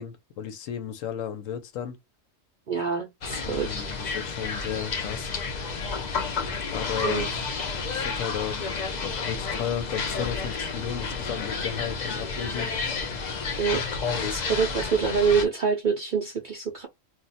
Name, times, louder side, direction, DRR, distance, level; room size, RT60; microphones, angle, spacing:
voice 1, 0.0-2.0 3.4-5.3 6.7-7.4 7.9-8.7 9.0-12.7, left 9 dB, 75° left, 1.0 m, -34 dB
voice 2, 2.7-3.9 7.0-7.3 13.6-13.8 14.3-16.9, right 6 dB, 55° right, 0.5 m, -26 dB
sound 1, 3.2-15.4, left 4 dB, 50° left, 0.5 m, -31 dB
2.4 x 2.1 x 3.9 m
omnidirectional pair, 1.4 m